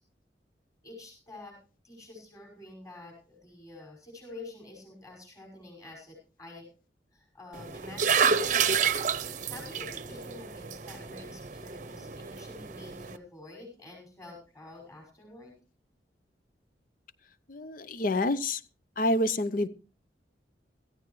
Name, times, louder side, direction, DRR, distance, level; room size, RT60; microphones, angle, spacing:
voice 1, 0.8-1.6 1.8-6.7 7.1-8.3 9.5-15.5, left 2 dB, 20° left, -2 dB, 5.5 m, -48 dB
sound 1, 7.5-13.2, right 6 dB, 45° right, 0.8 m, -30 dB
voice 2, 17.5-18.6 19.0-19.7, left 1 dB, 50° left, 15 dB, 0.7 m, -27 dB
16.5 x 15.0 x 3.1 m, 0.33 s
head